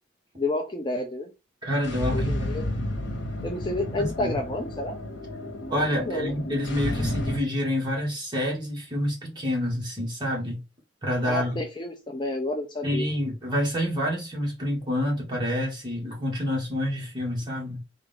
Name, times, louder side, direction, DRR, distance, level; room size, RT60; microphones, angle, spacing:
voice 1, 0.4-1.3 2.1-2.6 3.4-5.0 6.0-6.3 11.3-13.0, left 2 dB, 25° left, 0.5 m, -30 dB
voice 2, 1.6-2.5 4.0-4.3 5.7-10.6 11.0-11.6 12.8-17.8, equal, 25° right, 1.7 m, -28 dB
sound 1, 1.8-7.4, left 1 dB, 80° left, 1.1 m, -31 dB
3.6 x 2.5 x 3.6 m
head